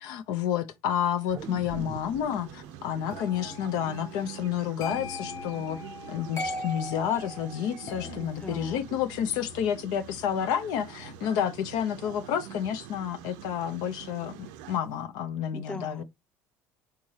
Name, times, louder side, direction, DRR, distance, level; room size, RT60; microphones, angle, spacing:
voice 1, 0.0-5.8 6.1-16.0, left 9 dB, 75° left, 0.6 m, -30 dB
sound 1, 1.3-5.8 6.2-6.3, right 5 dB, 35° right, 0.5 m, -45 dB
sound 2, 1.4-14.8, right 11 dB, 90° right, 0.5 m, -46 dB
sound 3, 3.1-14.1 14.3-14.7, left 2 dB, 45° left, 0.8 m, -42 dB
voice 2, 8.4-8.8 15.5-16.0, left 3 dB, 15° left, 0.7 m, -39 dB
4.7 x 3.7 x 2.8 m
supercardioid pair, 110°, 7 cm